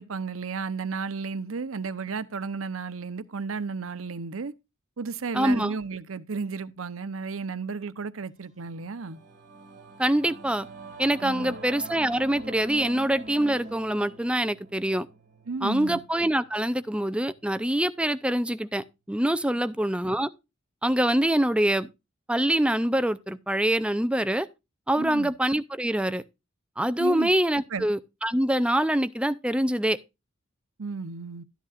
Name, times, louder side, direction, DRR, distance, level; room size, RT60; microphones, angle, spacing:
voice 1, 0.0-4.5 5.0-9.2 11.2-11.6 15.5-16.0 25.0-25.3 27.0-27.3 27.7-27.9 30.8-31.4, right 4 dB, 80° right, 0.7 m, -33 dB
voice 2, 5.3-5.7 10.0-10.7 11.0-15.1 15.6-20.3 20.8-21.9 22.3-24.5 24.9-26.2 26.8-30.0, right 1 dB, 5° right, 0.5 m, -25 dB
Singing / Musical instrument, 8.4-18.1, right 2 dB, 40° right, 2.4 m, -45 dB
13.0 x 10.0 x 2.4 m
head